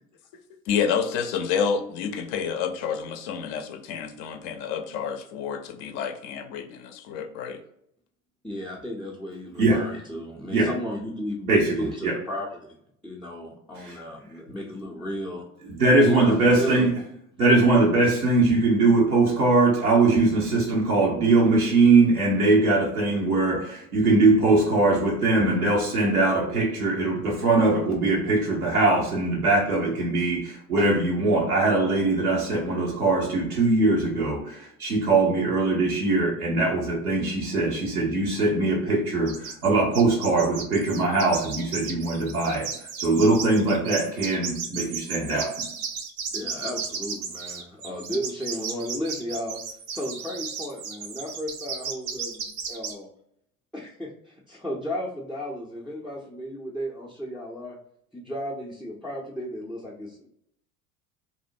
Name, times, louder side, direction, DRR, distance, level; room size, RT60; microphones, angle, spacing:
voice 1, 0.7-7.6, left 7 dB, 50° left, 7 dB, 0.5 m, -29 dB
voice 2, 8.4-12.8 13.0-15.4 16.0-16.9 46.3-49.6 49.9-53.1 53.7-57.8 58.1-60.3, equal, ahead, -5 dB, 0.4 m, -34 dB
voice 3, 11.5-12.2 13.8-13.9 15.7-16.9 17.4-42.7 43.0-45.6, right 2 dB, 85° right, -4 dB, 0.8 m, -21 dB
sound 1, 39.3-39.7 39.9-52.9, right 6 dB, 55° right, 0.7 m, -34 dB
2.6 x 2.0 x 2.6 m, 0.71 s
figure-of-eight pair, 65°, 43 cm